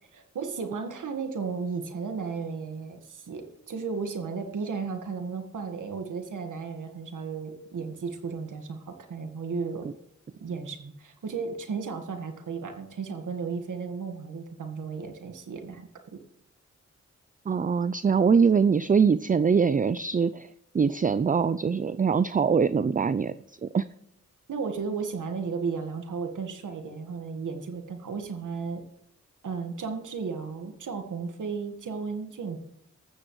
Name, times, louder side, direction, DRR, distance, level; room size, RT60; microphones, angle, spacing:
voice 1, 0.1-9.9 10.4-16.2 24.5-28.8 29.4-32.6, right 5 dB, 85° right, 5 dB, 1.7 m, -34 dB
voice 2, 17.5-23.4 23.6-23.9, right 6 dB, 25° right, 15 dB, 0.4 m, -23 dB
14.0 x 13.5 x 3.2 m, 0.82 s
cardioid pair, 45°, 30 cm